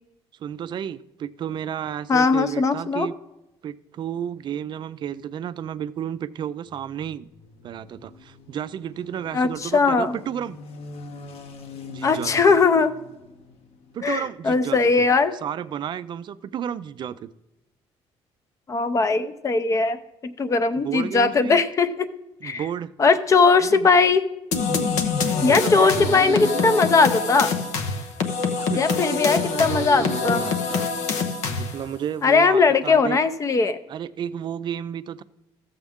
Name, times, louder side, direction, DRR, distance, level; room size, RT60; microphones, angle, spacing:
voice 1, 0.4-3.2 3.6-7.3 7.6-10.6 11.9-12.6 13.9-14.8 15.4-17.3 20.8-21.6 22.4-22.9 23.6-23.9 25.4-27.0 28.6-30.9 31.5-33.2 33.9-35.2, right 9 dB, 45° right, 15 dB, 0.4 m, -32 dB
voice 2, 2.1-3.1 9.3-10.2 12.0-13.0 14.0-15.3 18.7-20.0 20.4-22.1 22.4-22.6 23.0-24.2 25.4-27.5 28.7-30.4 32.2-33.8, left 4 dB, 30° left, 12 dB, 0.5 m, -19 dB
sound 1, 6.7-14.3, left 3 dB, 60° left, 0.9 m, -44 dB
sound 2, 24.5-31.9, left 5 dB, 90° left, 0.9 m, -25 dB
14.0 x 7.2 x 3.5 m, 0.96 s
cardioid pair, 135°, 11 cm